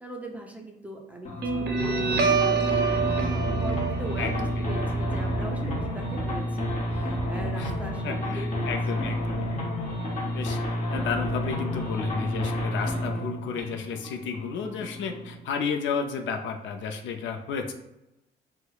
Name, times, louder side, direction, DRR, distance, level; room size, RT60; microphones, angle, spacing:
voice 1, 0.0-9.0, right 1 dB, 5° right, 1 dB, 0.5 m, -40 dB
sound 1, 1.2-15.4, left 1 dB, 40° left, 0.8 m, -30 dB
Guitar, 1.4-8.4, right 5 dB, 60° right, 0.6 m, -28 dB
voice 2, 4.2-4.6 7.6-7.7 8.0-9.5 10.3-10.6 10.9-17.7, left 5 dB, 70° left, 5 dB, 0.4 m, -32 dB
4.4 x 2.1 x 2.3 m, 0.89 s
cardioid pair, 90°, 20 cm